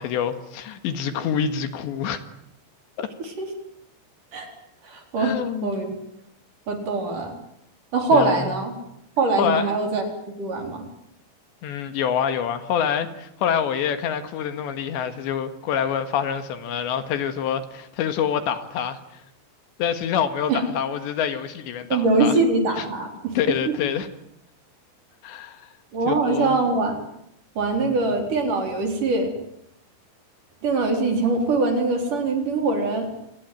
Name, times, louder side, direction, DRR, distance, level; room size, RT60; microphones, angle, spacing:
voice 1, 0.0-2.2 3.0-3.1 5.2-5.7 8.1-8.4 9.4-9.7 11.6-19.0 19.8-22.4 22.8-22.9 23.4-24.1 25.2-25.7 26.1-26.6 27.8-27.9, left 8 dB, 75° left, 3.9 m, -26 dB
voice 2, 4.8-5.4 5.6-5.9 6.7-7.3 7.9-8.7 9.2-10.0 10.4-10.8 20.5-20.6 21.9-23.3 23.7-23.8 25.9-27.0 27.6-29.3 30.6-33.1, right 3 dB, 45° right, 5.4 m, -22 dB
28.0 x 20.5 x 9.3 m
omnidirectional pair, 5.3 m